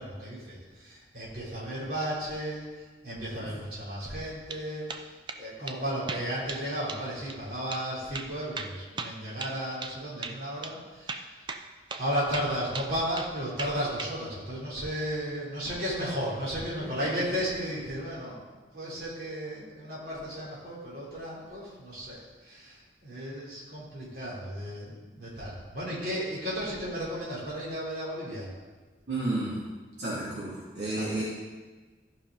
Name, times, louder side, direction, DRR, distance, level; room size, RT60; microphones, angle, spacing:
voice 1, 0.0-11.2 12.0-22.2 22.4-28.5 30.9-31.1, equal, 55° right, -7 dB, 3.8 m, -34 dB
sound 1, 4.2-4.6 4.9-5.4 5.7-5.8 6.1-6.6 6.9-7.0 7.3-7.4 7.7-7.9 8.1-10.0 10.2-10.4 10.6-10.7 11.1-11.6 11.9-12.1 12.3-13.3 13.6-14.1, right 4 dB, 25° right, 0.5 m, -37 dB
voice 2, 16.8-17.1 29.1-29.6 30.0-31.2, right 2 dB, 75° right, -9 dB, 2.9 m, -32 dB
14.0 x 5.7 x 5.1 m, 1.4 s
head